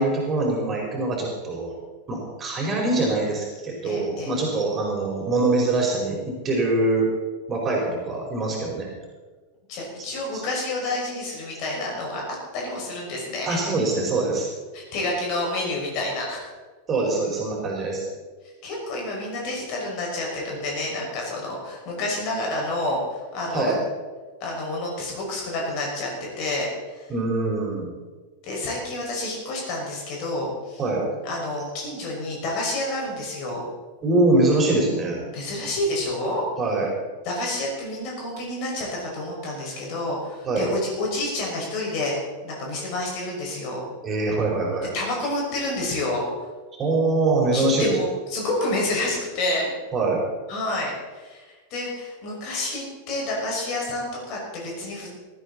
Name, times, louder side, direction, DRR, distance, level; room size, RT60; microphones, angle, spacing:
voice 1, 0.0-1.7 2.1-7.1 7.5-8.9 10.3-10.5 13.4-14.5 16.9-18.1 23.5-23.8 27.1-27.9 30.8-31.0 34.0-35.2 36.6-36.9 40.4-40.7 44.0-44.9 46.7-47.9 49.9-50.2, right 2 dB, 25° right, -2 dB, 4.9 m, -23 dB
voice 2, 3.8-4.3 9.7-12.2 12.5-13.6 14.7-16.5 18.6-23.7 24.4-27.1 28.4-30.8 31.2-33.6 35.3-36.4 37.2-43.8 44.9-46.2 47.5-49.7 50.5-55.1, left 2 dB, 40° left, -1 dB, 6.0 m, -29 dB
19.0 x 13.0 x 4.2 m, 1.4 s
figure-of-eight pair, 90°, 0 cm